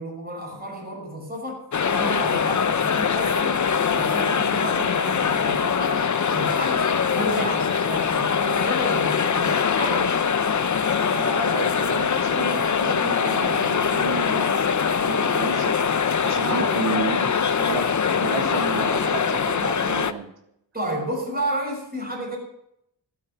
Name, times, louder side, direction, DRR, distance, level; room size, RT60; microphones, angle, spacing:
voice 1, 0.0-3.6 3.9-6.0 6.3-6.9 7.1-10.1 16.4-16.8 20.7-22.4, right 1 dB, 20° right, 0 dB, 6.3 m, -31 dB
sound 1, 1.7-20.1, left 6 dB, 40° left, 0.8 m, -22 dB
voice 2, 11.1-14.7 15.0-15.9 16.2-17.9 18.2-20.3, right 5 dB, 85° right, 5 dB, 2.2 m, -32 dB
13.0 x 9.4 x 7.1 m, 0.77 s
wide cardioid pair, 75°, 43 cm